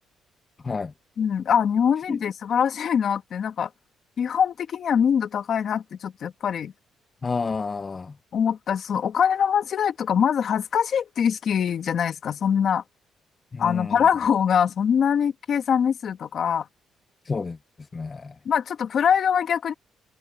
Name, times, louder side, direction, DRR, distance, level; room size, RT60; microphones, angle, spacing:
voice 1, 1.2-3.7 4.2-6.7 8.3-12.8 13.6-16.7 18.4-19.7, left 8 dB, 55° left, 1.5 m, -23 dB
voice 2, 7.2-8.1 13.5-14.0 17.3-17.6 17.9-18.3, left 4 dB, 30° left, 0.6 m, -29 dB
cardioid pair, 115°, 0 cm